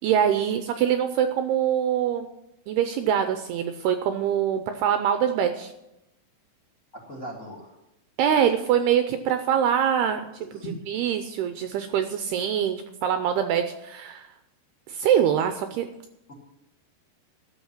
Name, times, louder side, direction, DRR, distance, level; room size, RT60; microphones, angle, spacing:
voice 1, 0.0-2.3 2.7-5.7 8.2-10.2 10.7-14.3 14.9-15.9, right 9 dB, 90° right, 8 dB, 2.3 m, -24 dB
voice 2, 7.0-7.7 10.5-10.8 16.3-16.4, equal, 60° left, 0 dB, 0.8 m, -38 dB
12.5 x 6.6 x 8.7 m, 0.88 s
omnidirectional pair, 5.3 m